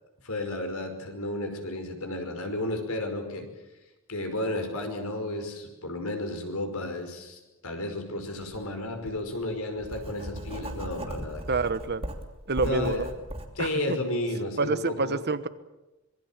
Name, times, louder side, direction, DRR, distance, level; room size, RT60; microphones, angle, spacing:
voice 1, 0.2-3.5 4.1-11.6 12.6-13.1 13.6-15.2, left 1 dB, 80° left, 5 dB, 5.4 m, -32 dB
Writing, 8.4-8.6 9.0-13.5, right 1 dB, 30° right, 2.9 m, -37 dB
voice 2, 11.5-12.1 12.5-13.1 13.6-14.0 14.4-15.5, right 3 dB, 50° right, 13 dB, 1.2 m, -28 dB
26.0 x 21.5 x 7.5 m, 1.0 s
head